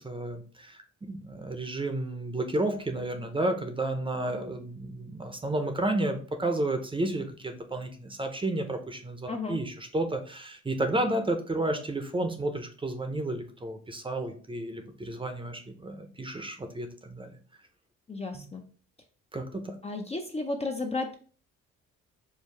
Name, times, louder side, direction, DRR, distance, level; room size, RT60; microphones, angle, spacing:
voice 1, 0.0-17.3 18.3-18.5 19.3-19.8, right 1 dB, 15° right, 6 dB, 0.7 m, -32 dB
voice 2, 9.3-9.6 18.1-18.6 19.8-21.1, left 3 dB, 20° left, 3 dB, 0.5 m, -33 dB
4.6 x 2.3 x 3.3 m, 0.41 s
cardioid pair, 90°, 30 cm